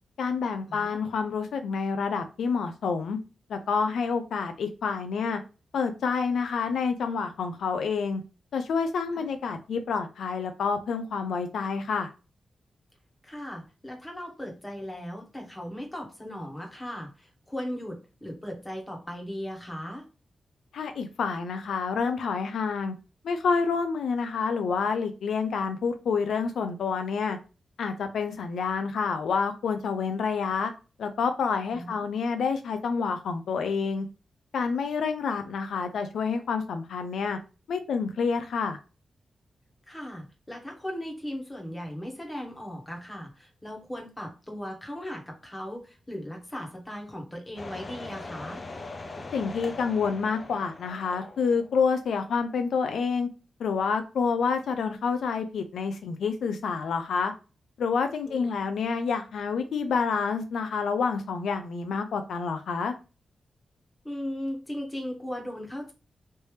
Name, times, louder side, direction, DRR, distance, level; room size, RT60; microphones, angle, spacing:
voice 1, 0.2-3.2 3.5-5.4 5.7-8.2 8.5-12.1 20.7-22.9 23.2-27.4 27.8-30.7 31.0-34.1 34.5-37.4 37.7-38.8 49.3-53.3 53.6-57.3 57.8-62.9, left 5 dB, 90° left, 7 dB, 0.4 m, -28 dB
voice 2, 13.2-20.1 31.7-32.0 39.9-48.6 58.2-58.5 64.0-65.9, equal, 15° left, 1 dB, 1.2 m, -37 dB
sound 1, 47.6-52.0 52.3-52.4, left 3 dB, 40° left, 0.5 m, -41 dB
3.3 x 2.8 x 3.1 m, 0.32 s
cardioid pair, 90°, 0 cm